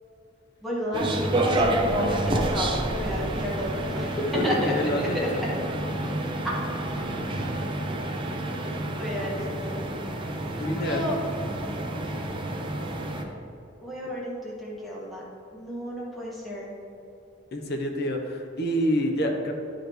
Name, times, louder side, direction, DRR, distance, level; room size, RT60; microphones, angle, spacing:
voice 1, 0.6-5.3 8.9-9.8 10.5-11.2 13.8-15.2 15.5-16.7, equal, ahead, -7 dB, 1.7 m, -31 dB
sound 1, 0.9-13.2, right 1 dB, 25° right, 0.6 m, -29 dB
voice 2, 4.3-5.2 10.6-11.2 17.5-19.5, equal, 60° left, 3 dB, 0.9 m, -27 dB
10.5 x 5.0 x 3.1 m, 2.8 s
head